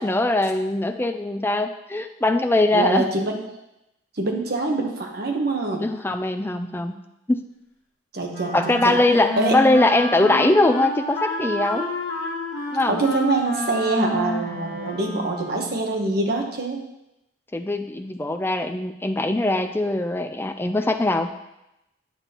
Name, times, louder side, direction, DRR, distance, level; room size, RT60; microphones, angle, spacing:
voice 1, 0.0-3.0 5.8-7.0 7.3-7.4 8.5-11.9 12.7-13.0 17.5-21.3, left 2 dB, 10° left, 7 dB, 0.4 m, -21 dB
voice 2, 2.7-3.4 4.2-5.9 8.1-8.6 8.8-9.0 9.4-9.6 12.9-16.8, right 2 dB, 55° right, 2 dB, 1.1 m, -24 dB
Wind instrument woodwind instrument, 8.3-15.8, equal, 65° left, 1.3 m, -30 dB
8.9 x 6.9 x 3.0 m, 0.89 s
head